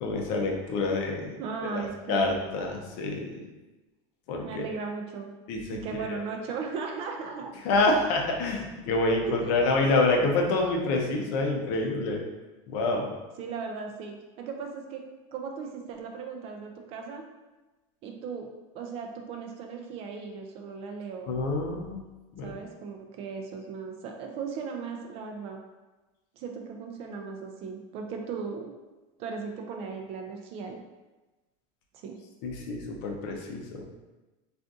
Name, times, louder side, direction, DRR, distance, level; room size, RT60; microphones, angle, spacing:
voice 1, 0.0-1.4 1.7-1.8 2.1-3.5 4.3-4.6 5.5-6.0 7.6-12.2 12.7-13.1 21.3-22.0 22.3-22.5 32.4-33.8, left 2 dB, 55° left, 1 dB, 0.6 m, -27 dB
voice 2, 1.4-2.6 4.4-5.3 5.7-7.5 9.3-9.6 13.4-15.0 15.3-17.3 18.0-21.3 22.4-25.6 26.4-28.7 29.2-30.8 31.9-32.2, right 5 dB, 40° right, 2 dB, 0.4 m, -37 dB
2.6 x 2.5 x 3.5 m, 1.1 s
cardioid pair, 165°, 16 cm